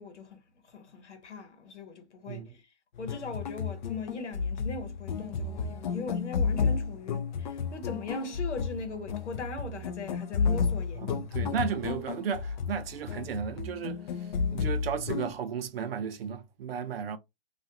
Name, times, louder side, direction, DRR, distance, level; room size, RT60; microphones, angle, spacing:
voice 1, 0.0-11.5, left 4 dB, 90° left, 1.0 m, -40 dB
sound 1, 3.0-15.3, left 5 dB, 45° left, 0.4 m, -32 dB
voice 2, 11.1-14.0 14.5-17.2, right 7 dB, 60° right, 0.6 m, -34 dB
2.4 x 2.3 x 2.7 m
hypercardioid pair, 145°, 34 cm